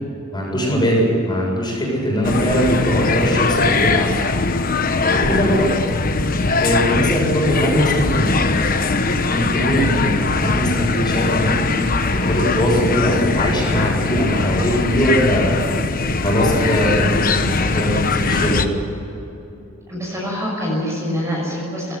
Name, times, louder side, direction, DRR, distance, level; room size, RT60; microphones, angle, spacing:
voice 1, 0.3-4.1 5.1-5.7 6.6-8.7 9.3-15.6 16.2-18.8, equal, 20° left, -2 dB, 7.5 m, -20 dB
sound 1, 2.2-18.7, left 3 dB, 45° left, 1.2 m, -20 dB
voice 2, 19.9-22.0, equal, 15° right, -3 dB, 6.1 m, -25 dB
19.5 x 17.0 x 9.7 m, 2.8 s
head